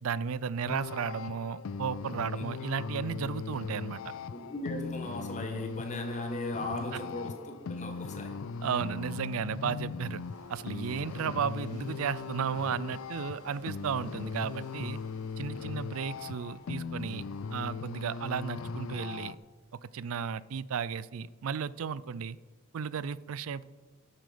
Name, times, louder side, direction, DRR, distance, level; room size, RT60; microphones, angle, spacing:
voice 1, 0.0-4.0 8.6-10.2 10.5-15.0 15.4-17.2 17.5-19.4 19.8-22.4 22.7-23.6, right 7 dB, 75° right, 19 dB, 0.4 m, -34 dB
sound 1, 0.7-19.3, left 5 dB, 75° left, 0.4 m, -39 dB
voice 2, 4.3-8.4, left 1 dB, 35° left, 5 dB, 1.4 m, -38 dB
sound 2, 7.9-19.7, right 1 dB, 35° right, 3.6 m, -59 dB
12.0 x 7.5 x 5.0 m, 1.3 s
head